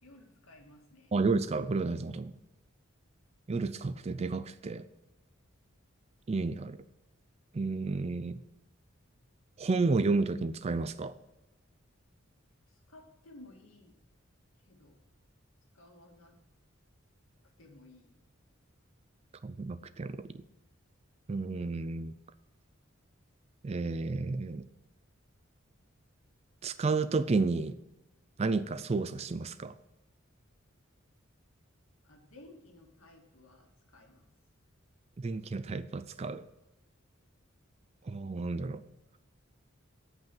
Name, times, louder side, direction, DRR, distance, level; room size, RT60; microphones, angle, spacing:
voice 1, 0.0-1.1 12.7-14.0 14.6-15.0 15.7-16.4 17.6-18.2 32.0-34.3, left 2 dB, 80° left, 1 dB, 2.0 m, -56 dB
voice 2, 1.1-2.4 3.5-4.9 6.3-6.8 7.5-8.4 9.6-11.1 19.4-20.3 21.3-22.1 23.6-24.7 26.6-27.8 28.4-29.7 35.2-36.4 38.1-38.8, right 3 dB, 30° right, 13 dB, 0.4 m, -31 dB
8.1 x 5.4 x 7.1 m, 0.99 s
head